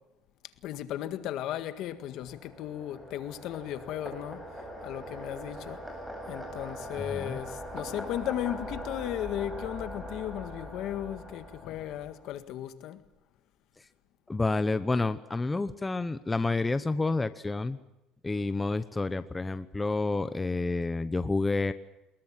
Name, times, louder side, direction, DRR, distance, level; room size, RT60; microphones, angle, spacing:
voice 1, 0.6-4.4 4.8-5.8 6.3-13.0, left 12 dB, 65° left, 1.8 m, -35 dB
sound 1, 1.7-12.3, equal, 5° right, 7.9 m, -42 dB
voice 2, 7.0-7.4 14.3-17.8 18.2-21.7, left 3 dB, 15° left, 0.9 m, -29 dB
24.0 x 21.5 x 7.4 m
cardioid pair, 135°, 0 cm